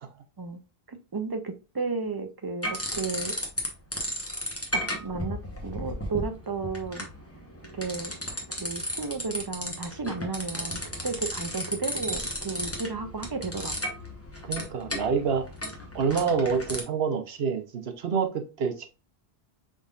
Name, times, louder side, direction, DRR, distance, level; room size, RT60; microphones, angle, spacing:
voice 1, 0.9-3.3 4.7-7.1 7.7-8.1 8.6-13.8, right 4 dB, 35° right, 0.4 m, -33 dB
sound 1, 2.6-3.7 3.9-16.8, equal, 15° left, 1.0 m, -34 dB
voice 2, 14.4-15.5 15.9-18.9, right 6 dB, 70° right, 1.0 m, -27 dB
5.3 x 3.7 x 2.4 m
omnidirectional pair, 1.1 m